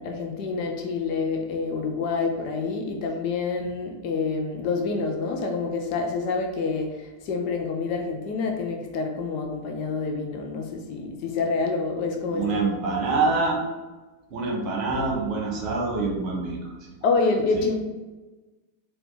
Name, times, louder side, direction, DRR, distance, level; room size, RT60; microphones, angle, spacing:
voice 1, 0.0-12.6 13.0-13.1 17.0-17.8, left 4 dB, 45° left, 2 dB, 0.6 m, -27 dB
voice 2, 12.3-13.6 14.3-16.7 17.5-17.6, right 3 dB, 35° right, -1 dB, 1.2 m, -26 dB
4.6 x 2.5 x 4.0 m, 1.2 s
figure-of-eight pair, 90°, 0 cm